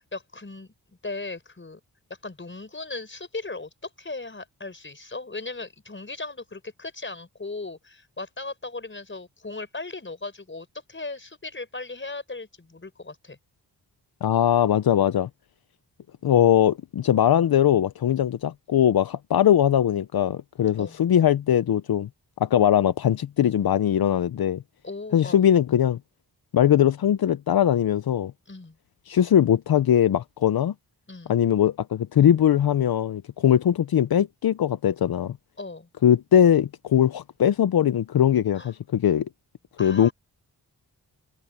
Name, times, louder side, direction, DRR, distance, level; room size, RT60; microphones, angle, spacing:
voice 1, 0.1-0.7 1.0-1.8 2.2-13.4 20.8-21.0 24.8-25.4 28.5-28.8 31.1-31.4 35.6-35.9 38.5-38.7 39.8-40.1, left 3 dB, 30° left, 5.4 m, -37 dB
voice 2, 14.2-15.3 16.2-22.1 22.4-24.6 25.1-26.0 26.5-28.3 29.1-30.7 31.3-35.4 36.0-39.3 39.8-40.1, left 10 dB, 70° left, 0.8 m, -21 dB
cardioid pair, 65°, 38 cm